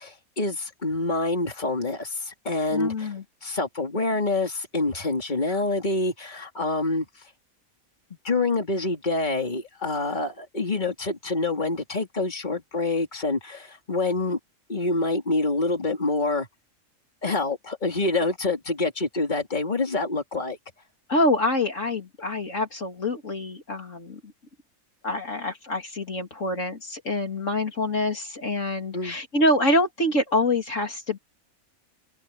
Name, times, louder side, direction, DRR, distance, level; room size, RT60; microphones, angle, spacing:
voice 1, 0.0-3.1 3.4-7.1 8.2-14.4 14.7-16.5 17.2-20.6 28.9-29.2, left 2 dB, 30° left, 3.2 m, -26 dB
voice 2, 2.7-3.2 21.1-24.2 25.0-31.2, left 1 dB, 60° left, 3.2 m, -26 dB
open air
omnidirectional pair, 1.5 m